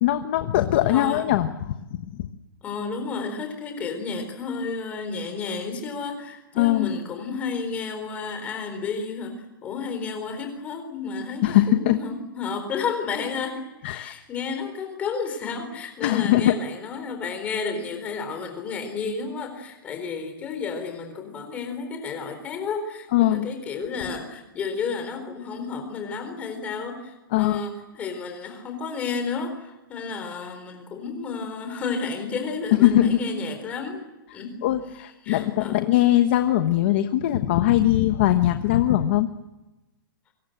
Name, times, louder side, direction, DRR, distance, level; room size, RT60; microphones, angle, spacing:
voice 1, 0.0-1.8 2.1-2.3 6.6-6.9 11.4-12.0 13.8-14.1 16.0-16.5 23.1-23.5 27.3-27.6 32.7-33.2 34.6-39.3, left 14 dB, 30° left, 8 dB, 1.2 m, -21 dB
voice 2, 0.9-1.2 2.6-34.1 34.3-34.5 35.2-35.8, left 5 dB, 10° left, 5 dB, 4.1 m, -32 dB
28.0 x 25.5 x 8.0 m, 0.98 s
hypercardioid pair, 180°, 12 cm